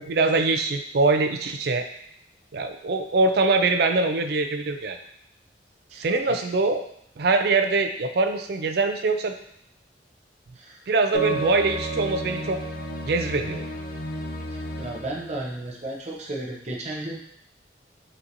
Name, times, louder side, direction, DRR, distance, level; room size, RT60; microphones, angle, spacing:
voice 1, 0.0-1.9 2.5-5.0 5.9-6.8 7.2-9.4 10.9-12.6 13.0-13.6, right 3 dB, 60° right, 6 dB, 0.4 m, -23 dB
voice 2, 5.9-6.4 10.6-10.8 14.8-17.2, right 1 dB, 40° right, -2 dB, 0.7 m, -34 dB
sound 1, 11.1-15.2, right 1 dB, 55° left, 0.4 m, -32 dB
4.8 x 2.9 x 2.6 m, 0.71 s
head